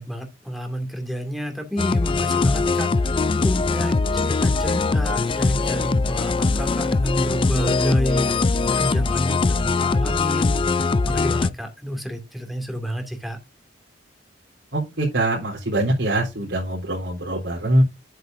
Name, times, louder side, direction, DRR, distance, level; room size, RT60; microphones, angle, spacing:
voice 1, 0.0-8.3 8.7-10.6 11.1-13.4, equal, ahead, 2.4 m, -29 dB
sound 1, 1.8-11.5, left 3 dB, 30° left, 0.4 m, -21 dB
voice 2, 14.7-17.8, right 1 dB, 70° right, 3.6 m, -23 dB
10.5 x 8.1 x 2.6 m
head